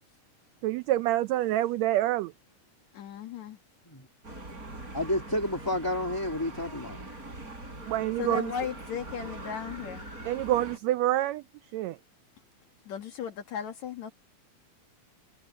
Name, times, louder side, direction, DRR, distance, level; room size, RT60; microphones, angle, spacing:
voice 1, 0.6-2.3 7.9-8.5 10.2-11.4 11.7-12.0, right 14 dB, 90° right, 1.5 m, -27 dB
voice 2, 2.9-3.6 8.2-10.1 12.9-14.1, left 7 dB, 65° left, 2.6 m, -36 dB
sound 1, 4.2-10.8, right 2 dB, 25° right, 5.6 m, -42 dB
voice 3, 4.9-7.0, left 1 dB, 10° left, 1.7 m, -30 dB
omnidirectional pair, 3.7 m